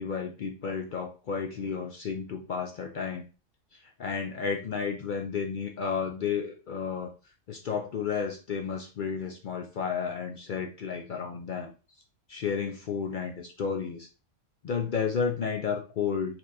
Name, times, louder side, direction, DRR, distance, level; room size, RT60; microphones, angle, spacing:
voice 1, 0.0-3.2 3.7-7.1 7.5-11.7 12.3-14.1 14.6-16.4, left 6 dB, 65° left, 3 dB, 0.5 m, -32 dB
4.3 x 3.0 x 2.5 m, 0.33 s
omnidirectional pair, 1.3 m